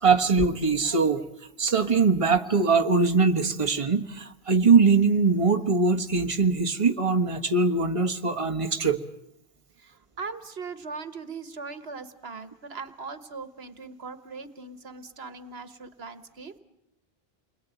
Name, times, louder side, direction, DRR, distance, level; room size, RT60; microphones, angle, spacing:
voice 1, 0.0-1.2 1.6-9.0, right 4 dB, 30° right, 5 dB, 1.5 m, -22 dB
voice 2, 9.8-16.6, right 4 dB, 75° right, 12 dB, 1.6 m, -40 dB
29.5 x 21.5 x 9.2 m, 0.79 s
omnidirectional pair, 1.0 m